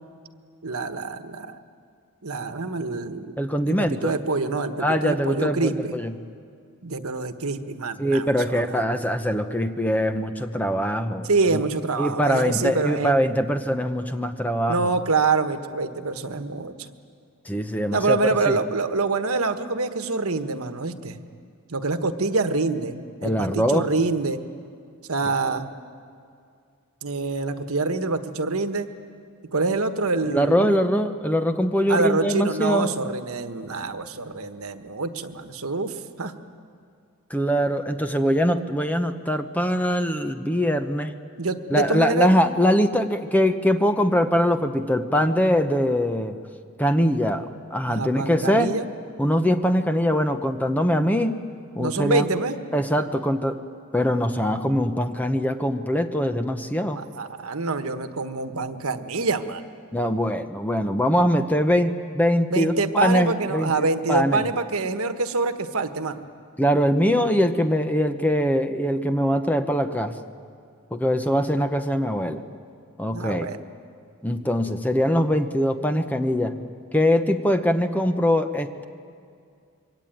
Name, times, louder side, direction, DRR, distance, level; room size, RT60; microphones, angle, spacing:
voice 1, 0.6-1.6 2.2-6.0 6.8-8.8 11.2-13.2 14.7-16.9 17.9-21.2 21.7-22.9 23.2-24.4 25.1-25.7 27.0-28.9 29.5-30.7 31.9-36.3 41.4-42.4 47.9-48.9 51.8-52.6 56.8-59.6 62.5-66.3 73.1-73.7, right 3 dB, 85° right, 9 dB, 1.3 m, -26 dB
voice 2, 3.4-4.1 4.8-6.1 8.0-11.6 12.0-14.9 17.5-18.2 18.5-18.6 23.2-23.9 25.3-25.4 30.3-32.9 37.3-41.1 41.7-46.4 46.8-47.4 47.7-48.8 49.2-51.4 51.7-52.3 52.7-53.6 53.9-57.0 59.9-64.5 66.6-70.2 70.9-72.4 73.0-73.5 74.2-76.5 76.9-78.8, equal, 5° left, 8 dB, 0.9 m, -22 dB
26.0 x 23.0 x 9.3 m, 2.3 s
head